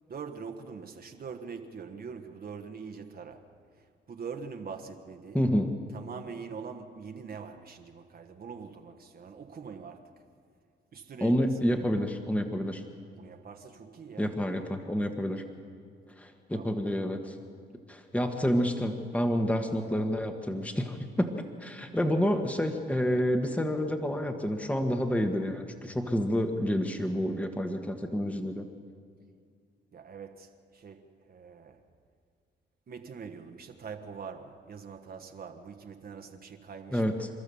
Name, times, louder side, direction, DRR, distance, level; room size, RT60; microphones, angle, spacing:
voice 1, 0.1-3.5 3.8-5.4 5.9-10.1 10.9-11.4 11.7-11.8 13.2-14.3 16.5-17.2 29.9-31.8 32.9-37.0, right 5 dB, 50° right, 1.4 m, -43 dB
voice 2, 5.3-5.8 11.2-12.8 14.2-15.4 16.2-17.4 17.9-28.6 36.9-37.3, equal, 5° left, 1.6 m, -29 dB
29.0 x 13.0 x 7.1 m
cardioid pair, 90°, 20 cm